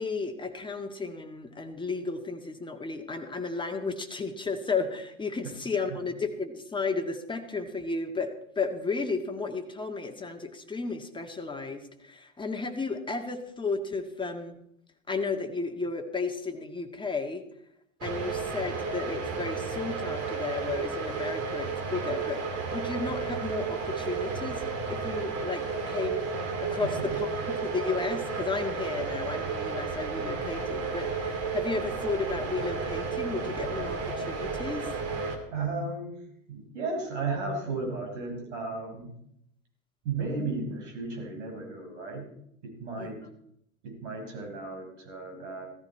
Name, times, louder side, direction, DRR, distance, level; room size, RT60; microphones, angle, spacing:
voice 1, 0.0-14.6 15.1-17.4 18.0-22.4 22.7-26.3 26.6-34.9 43.0-43.1, left 4 dB, 10° left, 5 dB, 1.8 m, -33 dB
sound 1, 18.0-35.4, right 4 dB, 40° right, 2.8 m, -32 dB
voice 2, 35.5-39.1 40.0-42.3 42.6-43.2 43.8-45.7, right 3 dB, 60° right, 3 dB, 5.5 m, -34 dB
16.5 x 14.0 x 4.4 m, 0.74 s
figure-of-eight pair, 85°, 39 cm